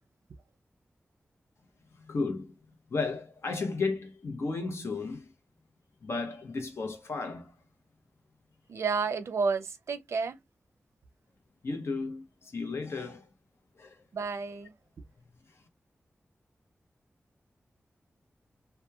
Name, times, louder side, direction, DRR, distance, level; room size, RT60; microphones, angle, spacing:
voice 1, 2.0-2.5 2.9-5.3 6.0-7.5 11.6-13.3 13.8-14.0, left 3 dB, 70° left, 0.8 m, -34 dB
voice 2, 8.7-10.4 14.1-14.7, right 5 dB, 90° right, 0.4 m, -31 dB
2.9 x 2.1 x 2.3 m
wide cardioid pair, 105°, 5 cm